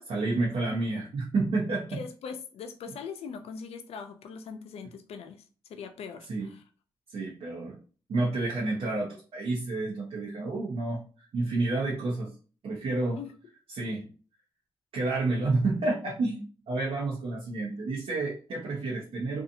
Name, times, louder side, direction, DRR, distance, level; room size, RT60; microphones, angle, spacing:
voice 1, 0.1-2.0 6.3-6.5 7.1-7.8 8.1-11.0 11.3-12.3 12.6-13.2 13.7-14.0 14.9-19.4, right 2 dB, 65° right, 0.8 m, -29 dB
voice 2, 1.9-5.4 5.7-6.6 13.2-13.3, left 6 dB, 70° left, 0.5 m, -41 dB
2.6 x 2.4 x 2.6 m
cardioid pair, 65°, 11 cm